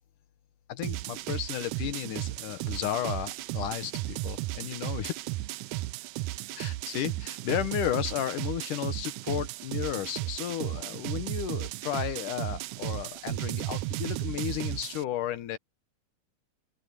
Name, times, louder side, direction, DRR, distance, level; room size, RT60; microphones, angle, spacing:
voice 1, 0.7-5.2 6.6-15.6, left 11 dB, 70° left, 2.5 m, -33 dB
sound 1, 0.8-15.0, right 18 dB, 85° right, 1.7 m, -35 dB
open air
omnidirectional pair, 4.0 m